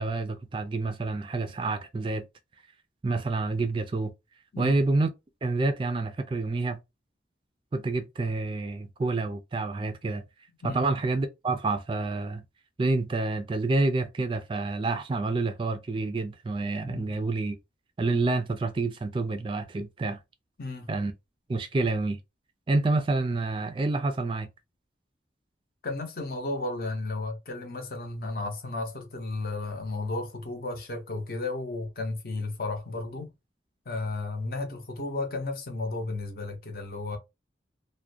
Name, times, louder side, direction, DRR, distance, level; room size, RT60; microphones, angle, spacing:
voice 1, 0.0-2.2 3.0-4.1 4.6-5.1 5.4-6.8 7.7-10.2 10.6-12.4 12.8-17.6 18.0-20.2 20.9-21.1 21.5-22.2 22.7-24.5, right 3 dB, 30° right, 0.3 m, -28 dB
voice 2, 16.8-17.2 20.6-20.9 25.8-33.3 33.9-37.2, left 2 dB, 50° left, 0.6 m, -33 dB
2.3 x 2.1 x 2.5 m
head